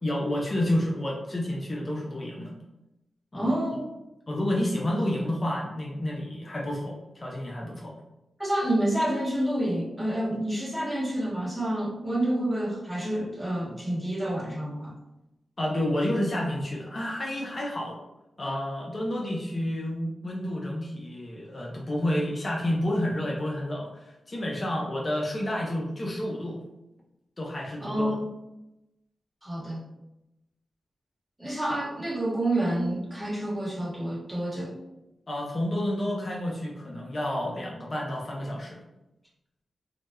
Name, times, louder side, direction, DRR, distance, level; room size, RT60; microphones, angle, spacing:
voice 1, 0.0-2.5 3.3-3.5 4.3-8.0 15.6-18.0 18.4-26.6 27.4-28.1 35.3-38.8, left 1 dB, 45° left, -2 dB, 0.5 m, -30 dB
voice 2, 3.3-3.9 8.4-14.9 27.8-28.3 29.4-29.8 31.4-34.8, right 1 dB, 10° right, -5 dB, 1.1 m, -28 dB
2.1 x 2.0 x 2.9 m, 0.91 s
supercardioid pair, 40°, 0 cm